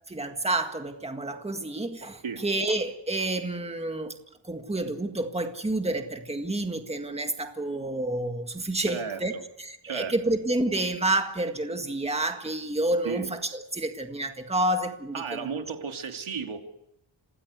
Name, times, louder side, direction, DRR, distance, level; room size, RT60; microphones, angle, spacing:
voice 1, 0.1-4.1 4.4-9.3 9.6-15.6, right 2 dB, 15° right, 5 dB, 1.8 m, -29 dB
voice 2, 8.9-9.4 9.8-10.1 13.0-13.3 15.1-16.6, right 6 dB, 85° right, 5 dB, 2.6 m, -34 dB
27.5 x 18.5 x 8.2 m, 0.86 s
wide cardioid pair, 150°, 47 cm